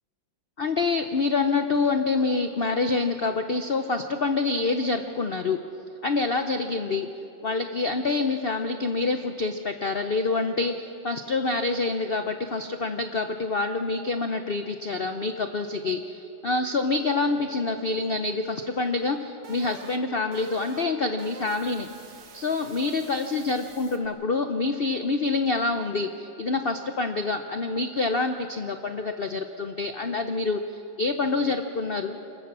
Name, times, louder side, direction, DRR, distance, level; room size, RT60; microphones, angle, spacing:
voice 1, 0.6-5.6 6.0-7.1 7.4-21.9 22.3-32.2, left 3 dB, 70° left, 7 dB, 0.5 m, -27 dB
sound 1, 17.0-24.1, right 7 dB, 70° right, 1.9 m, -47 dB
26.0 x 14.5 x 7.5 m, 2.8 s
omnidirectional pair, 2.0 m